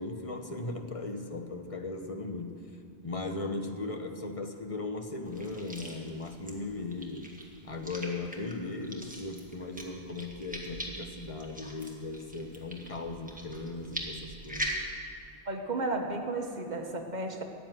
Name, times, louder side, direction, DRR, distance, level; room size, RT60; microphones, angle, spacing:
voice 1, 0.0-2.6 3.0-7.4 7.6-14.8, left 2 dB, 35° left, 5 dB, 1.0 m, -37 dB
sound 1, 5.3-14.8, right 1 dB, 5° right, 1.7 m, -42 dB
voice 2, 15.5-17.4, right 2 dB, 45° right, 3 dB, 1.4 m, -33 dB
14.0 x 8.0 x 9.4 m, 2.3 s
omnidirectional pair, 1.1 m